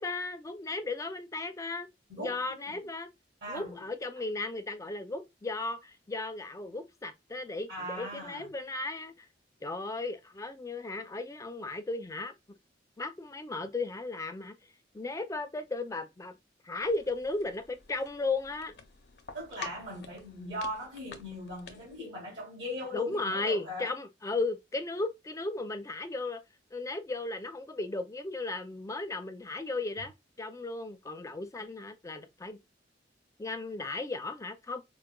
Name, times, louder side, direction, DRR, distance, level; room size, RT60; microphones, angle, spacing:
voice 1, 0.0-1.9 2.2-3.1 3.5-9.3 9.6-12.3 13.0-14.5 14.9-16.3 16.6-18.8 22.9-26.4 26.7-30.1 30.4-32.6 33.4-34.8, left 2 dB, 20° left, 0.4 m, -35 dB
voice 2, 2.1-2.4 2.7-2.8 3.4-3.8 7.7-8.5 19.3-23.9, equal, 70° right, 2.0 m, -39 dB
sound 1, 16.8-22.0, left 5 dB, 60° left, 0.6 m, -49 dB
4.6 x 2.1 x 2.2 m
head